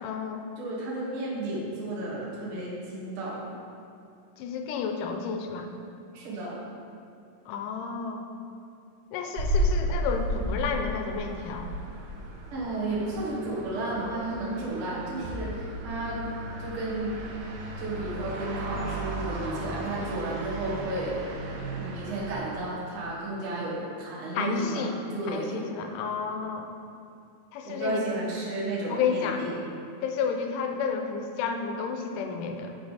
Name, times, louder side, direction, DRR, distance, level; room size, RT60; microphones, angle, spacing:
voice 1, 0.0-0.5 4.4-5.7 7.5-8.3 9.1-11.7 18.8-19.0 24.4-25.0 25.3-26.7 27.5-28.0 28.9-29.5 30.0-32.8, left 6 dB, 80° left, 5 dB, 2.1 m, -31 dB
voice 2, 0.6-3.5 6.1-6.6 12.5-16.2 16.6-17.2 17.8-21.3 21.8-25.6 27.6-29.7, right 2 dB, 55° right, -7 dB, 1.7 m, -33 dB
sound 1, 9.4-22.5, right 1 dB, 85° right, 2.5 m, -34 dB
6.7 x 5.5 x 4.1 m, 2.5 s
omnidirectional pair, 3.9 m